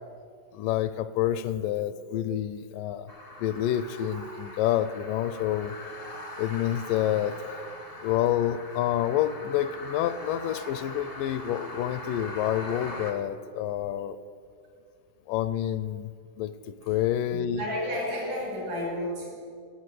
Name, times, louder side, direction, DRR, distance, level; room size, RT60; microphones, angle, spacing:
voice 1, 0.5-3.1 3.4-5.7 6.4-7.4 8.0-14.2 15.3-16.1 16.4-17.6, left 11 dB, 80° left, 14 dB, 2.0 m, -28 dB
sound 1, 3.1-13.1, left 2 dB, 30° left, 0.6 m, -42 dB
voice 2, 17.3-19.3, left 1 dB, 85° right, -3 dB, 6.8 m, -32 dB
17.0 x 8.1 x 8.1 m, 2.3 s
omnidirectional pair, 4.0 m